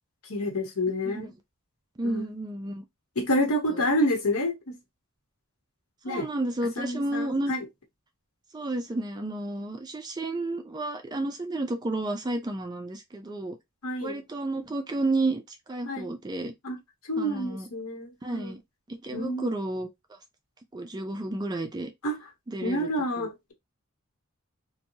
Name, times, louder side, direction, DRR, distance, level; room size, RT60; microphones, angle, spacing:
voice 1, 0.3-1.3 2.0-2.4 3.2-4.8 6.0-6.3 6.8-7.6 13.8-14.2 15.9-16.1 16.6-16.8 17.1-18.5 19.1-19.5 22.0-22.2 22.6-23.5, equal, 80° left, 1.0 m, -28 dB
voice 2, 2.0-2.8 3.7-3.8 6.1-7.5 8.5-13.6 14.0-16.5 17.2-17.7 18.2-18.6 18.9-19.9 20.7-21.9 22.5-22.9 23.2-23.3, right 2 dB, 20° right, 0.4 m, -31 dB
2.9 x 2.2 x 2.7 m
head